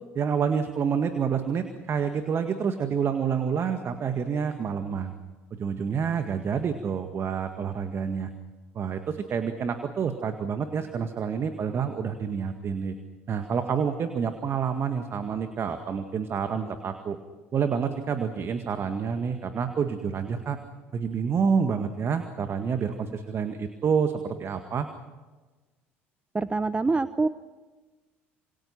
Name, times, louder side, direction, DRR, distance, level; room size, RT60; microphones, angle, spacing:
voice 1, 0.1-5.1 5.5-8.3 8.7-12.9 13.3-17.2 17.5-20.6 20.9-24.9, right 6 dB, 40° right, 8 dB, 1.9 m, -28 dB
voice 2, 26.3-27.3, right 3 dB, 20° right, 14 dB, 0.9 m, -25 dB
28.0 x 27.0 x 5.9 m, 1.3 s
figure-of-eight pair, 60°, 7 cm